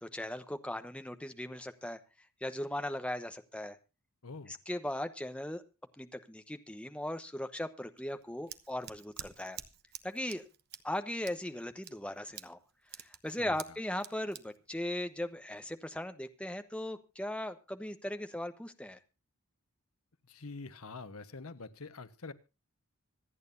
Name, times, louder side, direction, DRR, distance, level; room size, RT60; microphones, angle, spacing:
voice 1, 0.0-2.0 2.4-3.8 4.7-5.6 6.0-9.6 10.0-10.4 10.8-12.6 13.0-19.0, left 1 dB, 5° left, 1.0 m, -38 dB
voice 2, 4.2-4.5 13.4-13.8 20.3-22.3, left 3 dB, 75° left, 1.2 m, -46 dB
Scissors, 8.0-15.7, right 10 dB, 45° right, 1.1 m, -50 dB
26.0 x 9.2 x 2.6 m
head